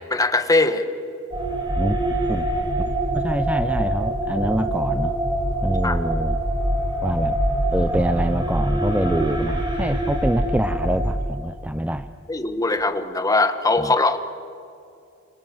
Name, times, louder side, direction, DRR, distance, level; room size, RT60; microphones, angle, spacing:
voice 1, 0.1-0.8 5.8-6.0 12.3-14.2, left 2 dB, 15° left, 8 dB, 1.6 m, -20 dB
sound 1, 1.3-11.1, right 1 dB, 25° right, 5.3 m, -24 dB
voice 2, 3.1-5.1 5.6-6.4 7.0-7.4 7.7-12.1 13.8-13.9, right 1 dB, 5° right, 10 dB, 0.6 m, -25 dB
28.5 x 26.5 x 7.9 m, 2.6 s
head